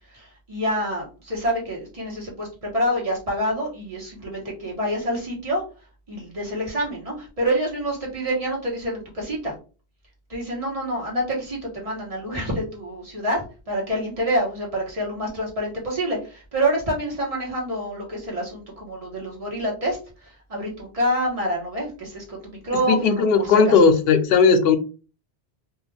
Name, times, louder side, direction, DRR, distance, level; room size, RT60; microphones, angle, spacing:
voice 1, 0.1-5.6 6.1-9.5 10.3-23.8, equal, 35° right, 1.1 m, -27 dB
voice 2, 22.9-24.8, left 5 dB, 70° left, 0.7 m, -16 dB
2.4 x 2.3 x 3.2 m
omnidirectional pair, 1.1 m